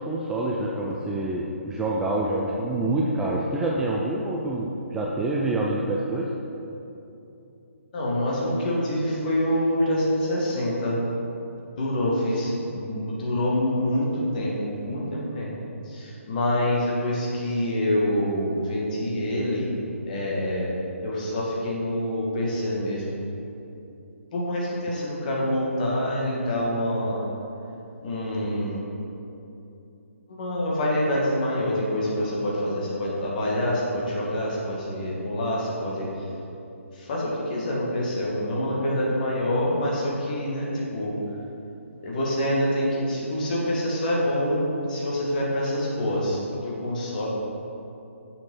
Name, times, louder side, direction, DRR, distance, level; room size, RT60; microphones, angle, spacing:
voice 1, 0.0-6.3, right 2 dB, 5° right, -3 dB, 0.4 m, -26 dB
voice 2, 7.9-11.0 11.8-15.6 15.8-19.7 20.1-20.7 21.0-23.2 24.3-27.2 28.0-28.9 30.4-36.1 36.9-41.2 42.0-44.6 44.9-47.3, left 1 dB, 35° left, -4 dB, 2.2 m, -26 dB
7.0 x 6.5 x 5.9 m, 2.9 s
figure-of-eight pair, 140°, 7 cm